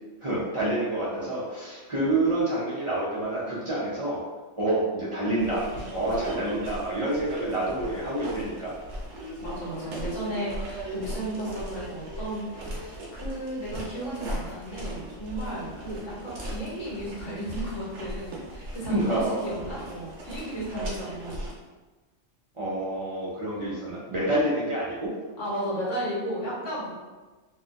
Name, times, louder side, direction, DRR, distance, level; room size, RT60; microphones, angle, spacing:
voice 1, 0.2-4.2 4.6-8.8 18.9-19.4 22.6-25.1, right 1 dB, 50° right, -8 dB, 0.3 m, -28 dB
sound 1, 5.4-21.5, right 1 dB, 70° right, 1.0 m, -38 dB
voice 2, 9.4-21.5 25.4-26.9, right 1 dB, 70° left, -7 dB, 1.3 m, -34 dB
2.7 x 2.5 x 2.4 m, 1.3 s
omnidirectional pair, 1.3 m